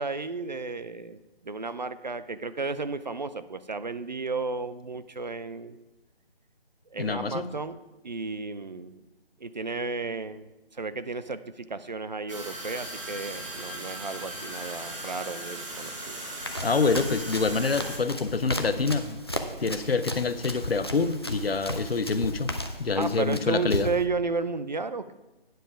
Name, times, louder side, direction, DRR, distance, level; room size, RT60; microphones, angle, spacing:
voice 1, 0.0-5.8 6.9-7.8 8.0-9.0 9.4-16.2 23.0-25.1, right 3 dB, 50° right, 13 dB, 0.4 m, -33 dB
voice 2, 7.0-7.5 16.6-19.2 19.6-22.5 22.8-23.9, left 4 dB, 75° left, 12 dB, 0.7 m, -26 dB
sound 1, 12.3-18.0, right 1 dB, 30° right, 1.5 m, -38 dB
Run, 16.4-24.1, equal, 25° left, 0.4 m, -36 dB
9.2 x 7.0 x 4.8 m, 1.1 s
figure-of-eight pair, 150°, 30 cm